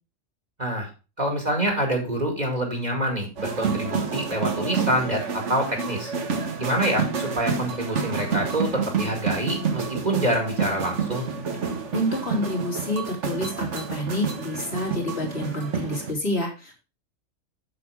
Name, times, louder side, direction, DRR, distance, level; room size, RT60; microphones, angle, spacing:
voice 1, 0.6-0.9 1.2-6.1 6.6-11.2, right 1 dB, 30° right, 2 dB, 2.3 m, -26 dB
sound 1, 3.4-16.1, right 5 dB, 65° right, 1.6 m, -29 dB
voice 2, 11.9-16.8, left 1 dB, 50° left, -1 dB, 3.3 m, -28 dB
7.8 x 6.9 x 4.8 m, 0.31 s
omnidirectional pair, 1.3 m